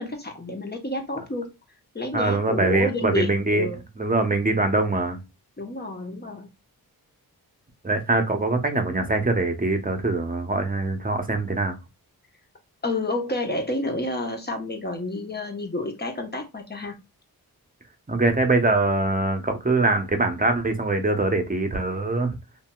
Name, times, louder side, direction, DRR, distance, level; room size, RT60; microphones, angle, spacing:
voice 1, 0.0-1.5 1.9-3.8 5.6-6.5 12.8-17.0, left 2 dB, 25° left, 1.0 m, -30 dB
voice 2, 2.1-3.7 4.0-5.2 7.8-11.8 18.1-22.3, right 2 dB, 20° right, 0.8 m, -23 dB
2.8 x 2.7 x 2.2 m
cardioid pair, 50°, 39 cm